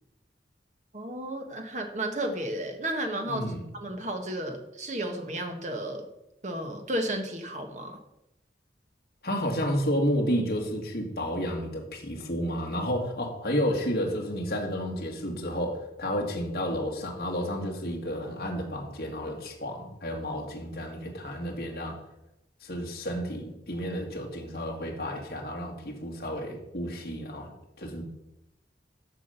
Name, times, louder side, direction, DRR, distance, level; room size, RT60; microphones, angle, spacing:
voice 1, 0.9-3.4 3.7-6.1 6.4-8.0, right 1 dB, 40° right, 4 dB, 1.4 m, -33 dB
voice 2, 3.3-3.6 9.2-22.0 22.6-27.5 27.8-28.0, equal, 60° left, -1 dB, 2.1 m, -31 dB
13.5 x 5.1 x 5.7 m, 0.87 s
head